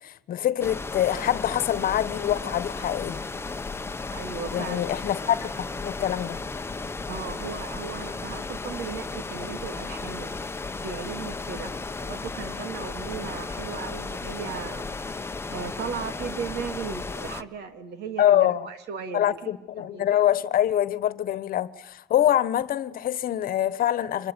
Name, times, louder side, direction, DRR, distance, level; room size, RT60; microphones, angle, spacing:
voice 1, 0.0-3.2 4.5-6.4 18.2-18.7 19.1-24.3, left 11 dB, 60° left, 1.3 m, -25 dB
sound 1, 0.6-17.4, left 3 dB, 15° left, 1.0 m, -34 dB
voice 2, 4.1-4.8 7.1-10.3 10.8-11.7 12.0-15.0 15.5-19.3 19.8-20.0, right 6 dB, 80° right, 3.4 m, -36 dB
26.0 x 22.5 x 9.9 m
cardioid pair, 110°, 17 cm